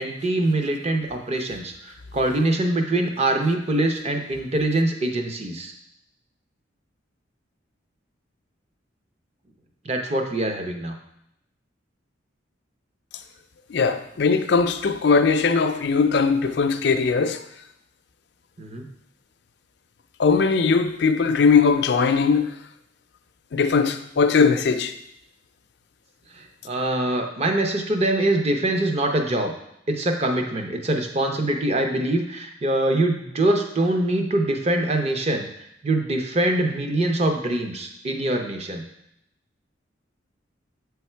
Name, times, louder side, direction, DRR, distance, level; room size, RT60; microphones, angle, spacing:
voice 1, 0.0-5.7 9.9-11.0 18.6-18.8 26.4-29.5 29.9-35.5 35.8-38.8, right 1 dB, 35° right, 0.7 m, -24 dB
voice 2, 13.7-17.4 20.2-22.6 23.5-25.0, left 5 dB, 60° left, 0.4 m, -20 dB
8.0 x 3.5 x 4.4 m
head